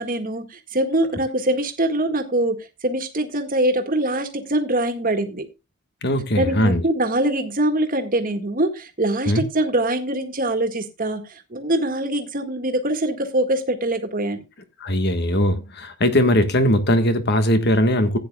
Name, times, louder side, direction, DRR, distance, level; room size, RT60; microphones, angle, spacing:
voice 1, 0.0-5.5 6.4-11.2 11.5-14.4, right 1 dB, 40° right, 1.7 m, -23 dB
voice 2, 6.0-6.8 9.3-9.4 14.8-18.2, left 1 dB, 50° left, 1.5 m, -19 dB
16.0 x 9.4 x 2.3 m
head